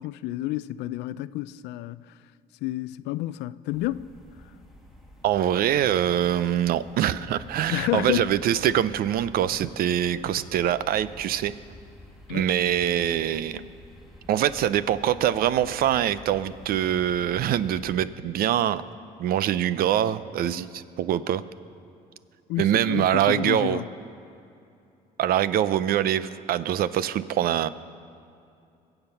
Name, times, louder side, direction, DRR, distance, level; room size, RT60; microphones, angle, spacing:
voice 1, 0.0-2.1 2.6-4.1 7.7-8.3 12.3-12.5 22.5-23.9, left 15 dB, 85° left, 0.4 m, -30 dB
Train Passing By Slow Medium Speed R to L, 3.7-18.0, left 1 dB, ahead, 2.0 m, -49 dB
voice 2, 5.2-11.5 12.3-13.6 14.3-18.8 19.2-21.4 22.6-23.8 25.2-27.7, right 11 dB, 60° right, 0.5 m, -24 dB
22.0 x 8.0 x 5.6 m
cardioid pair, 110°, 17 cm